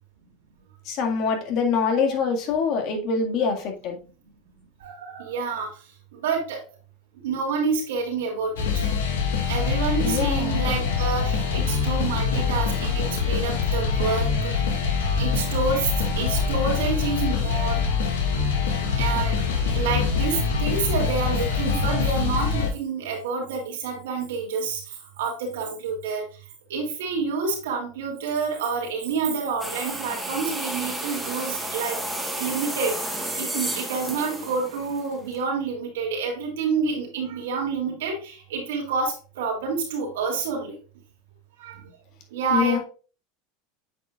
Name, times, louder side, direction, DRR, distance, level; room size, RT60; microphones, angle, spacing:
voice 1, 0.9-4.0 10.0-10.6 42.5-42.8, left 5 dB, 55° left, 2 dB, 1.9 m, -24 dB
voice 2, 4.8-5.7 6.1-6.6 7.2-8.8 9.5-14.5 15.2-17.8 19.0-19.3 19.7-24.8 25.2-26.2 26.7-32.0 32.4-32.9 33.4-40.8 41.6-41.7 42.3-42.8, right 4 dB, 85° right, 0 dB, 2.7 m, -28 dB
sound 1, 8.6-22.7, left 6 dB, 90° left, 1.8 m, -24 dB
sound 2, 9.4-21.9, right 3 dB, 60° right, 2.6 m, -38 dB
sound 3, 29.6-35.4, right 1 dB, 5° right, 1.4 m, -32 dB
8.6 x 5.0 x 2.4 m, 0.36 s
supercardioid pair, 115°, 0 cm